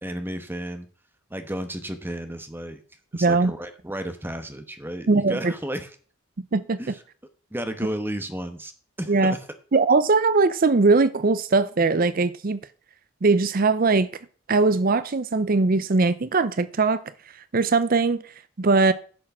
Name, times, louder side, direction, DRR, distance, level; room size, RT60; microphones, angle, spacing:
voice 1, 0.0-0.9 1.3-2.8 3.1-5.9 6.8-7.0 7.5-8.7 9.0-9.5, right 1 dB, 10° right, 1.1 m, -33 dB
voice 2, 3.2-3.5 5.1-5.5 6.4-6.8 9.1-9.3 9.7-12.6 13.2-14.1 14.5-17.0 17.5-18.2 18.6-18.9, right 3 dB, 45° right, 0.5 m, -20 dB
10.5 x 6.3 x 6.0 m
head